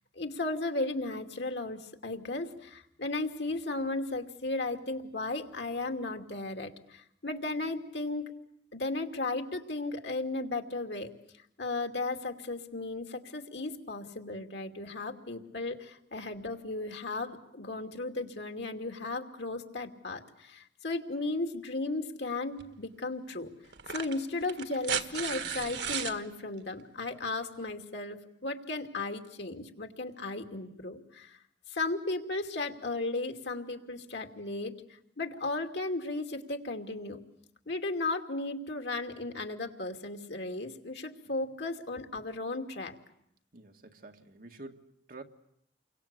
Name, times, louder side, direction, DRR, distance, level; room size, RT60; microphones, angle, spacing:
voice 1, 0.2-8.3 8.7-11.1 11.6-23.5 23.9-31.4 31.7-34.7 35.2-37.2 37.7-43.0, left 2 dB, 85° left, 2.8 m, -35 dB
sound 1, 22.6-22.7 23.7-26.2 27.7-27.8, right 8 dB, 80° right, 1.7 m, -35 dB
voice 2, 43.5-45.2, right 2 dB, 55° right, 2.1 m, -48 dB
30.0 x 24.0 x 8.3 m
head